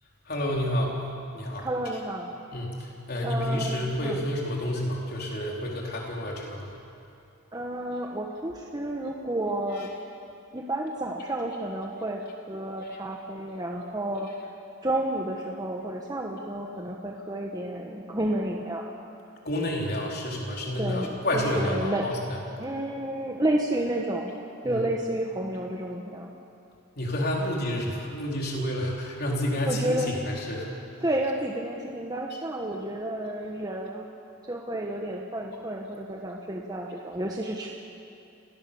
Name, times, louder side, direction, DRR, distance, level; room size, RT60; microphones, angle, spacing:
voice 1, 0.3-0.9 1.3-1.7 2.5-2.7 3.1-6.7 19.4-22.2 24.6-24.8 27.0-30.7, left 1 dB, 50° left, -2 dB, 4.3 m, -29 dB
voice 2, 1.6-2.3 3.2-4.2 7.5-9.9 10.5-14.3 14.8-18.9 20.7-22.1 22.6-24.3 24.6-26.3 29.6-30.2 31.0-34.1 34.5-37.7, right 1 dB, 20° right, 0 dB, 1.3 m, -31 dB
29.5 x 17.5 x 7.1 m, 2.7 s
head